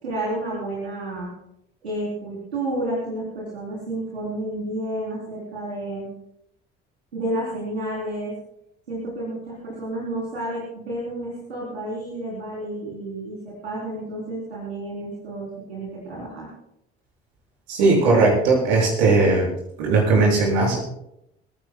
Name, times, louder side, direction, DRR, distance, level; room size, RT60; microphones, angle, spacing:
voice 1, 0.0-1.3 1.8-6.1 7.1-8.3 8.9-16.5, right 1 dB, 90° right, -5 dB, 3.7 m, -30 dB
voice 2, 17.7-19.5 19.8-20.8, right 3 dB, 75° right, -3 dB, 7.1 m, -18 dB
26.0 x 15.5 x 2.3 m, 0.79 s
hypercardioid pair, 55°, 32 cm